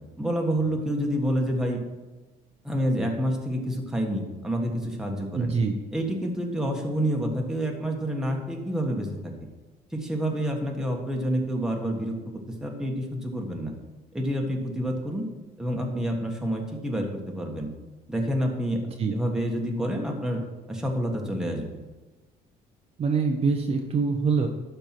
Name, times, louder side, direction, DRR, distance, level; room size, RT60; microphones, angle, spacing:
voice 1, 0.2-1.8 2.6-5.5 5.9-9.3 9.9-12.1 12.6-13.7 14.1-15.2 15.6-17.7 18.1-18.8 19.1-20.4 20.7-21.8, equal, 5° right, 0 dB, 1.5 m, -28 dB
voice 2, 5.3-5.7 19.0-19.1 23.0-24.5, right 5 dB, 35° right, 3 dB, 0.8 m, -24 dB
12.0 x 4.6 x 5.9 m, 1.2 s
cardioid pair, 135°, 16 cm